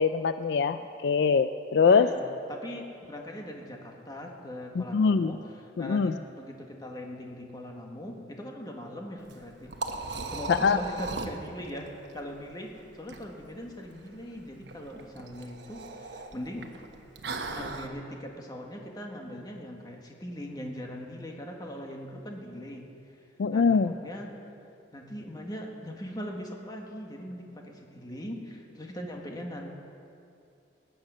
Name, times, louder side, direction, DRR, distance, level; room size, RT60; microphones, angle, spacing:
voice 1, 0.0-2.1 4.8-5.3 5.8-6.1 10.5-10.8 23.4-23.9, left 5 dB, 70° left, 12 dB, 0.4 m, -23 dB
voice 2, 1.8-16.7 17.5-24.3 24.9-29.7, equal, 25° left, 1 dB, 1.6 m, -40 dB
Liquid, 9.2-17.9, right 3 dB, 75° right, 1.0 m, -39 dB
19.0 x 8.7 x 6.3 m, 2.6 s
head